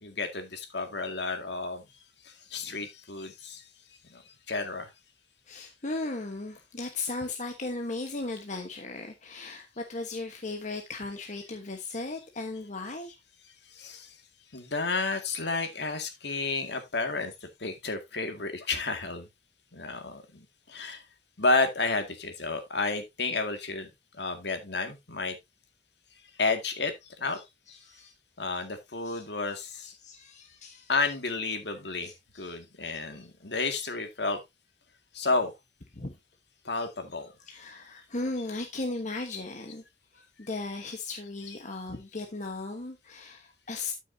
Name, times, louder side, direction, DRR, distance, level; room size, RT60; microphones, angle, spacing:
voice 1, 0.0-1.8 2.5-3.6 4.1-4.2 4.5-4.9 13.8-14.1 14.5-19.3 19.7-20.4 20.7-21.0 21.4-23.9 24.2-25.4 26.4-26.9 27.2-27.4 28.4-29.9 30.9-32.1 32.4-34.4 35.1-35.5 36.7-37.3 41.5-41.6, left 3 dB, 70° left, 2.0 m, -31 dB
voice 2, 5.5-13.2 27.8-28.1 29.0-29.2 29.8-30.9 32.0-32.6 35.9-36.1 37.5-39.8 40.4-43.9, left 2 dB, 45° left, 1.2 m, -37 dB
12.5 x 6.2 x 2.7 m
head